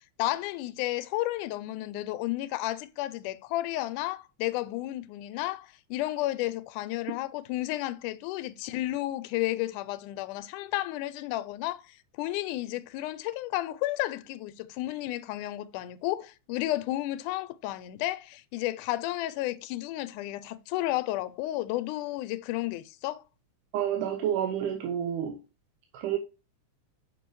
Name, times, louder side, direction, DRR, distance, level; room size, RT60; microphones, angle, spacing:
voice 1, 0.2-23.2, left 16 dB, 85° left, 2.1 m, -32 dB
voice 2, 23.7-25.4 25.9-26.2, right 10 dB, 90° right, 2.3 m, -29 dB
6.7 x 5.7 x 3.0 m
omnidirectional pair, 3.5 m